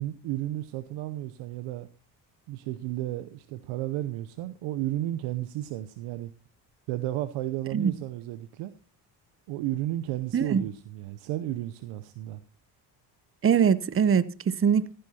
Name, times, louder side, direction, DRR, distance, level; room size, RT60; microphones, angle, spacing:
voice 1, 0.0-1.9 2.5-6.3 6.9-8.7 9.5-12.4, right 14 dB, 75° right, 0.8 m, -33 dB
voice 2, 10.3-10.6 13.4-14.9, right 7 dB, 25° right, 0.8 m, -23 dB
15.0 x 10.5 x 2.9 m
hypercardioid pair, 55°, 50 cm